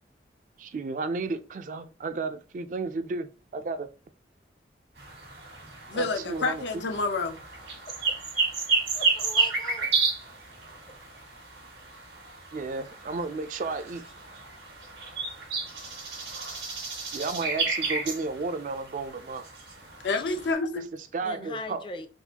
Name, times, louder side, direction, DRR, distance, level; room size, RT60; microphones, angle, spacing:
voice 1, 0.6-3.9 5.9-6.6 12.5-14.0 17.1-19.5 20.8-21.8, right 3 dB, 45° right, 0.3 m, -33 dB
sound 1, 5.0-20.5, right 4 dB, 85° right, 1.4 m, -32 dB
voice 2, 5.9-7.4 20.0-20.8, left 3 dB, 90° left, 0.6 m, -28 dB
voice 3, 7.9-8.4 8.9-9.9 20.1-20.4 21.2-22.1, left 2 dB, 30° left, 0.4 m, -40 dB
3.9 x 2.4 x 2.8 m
head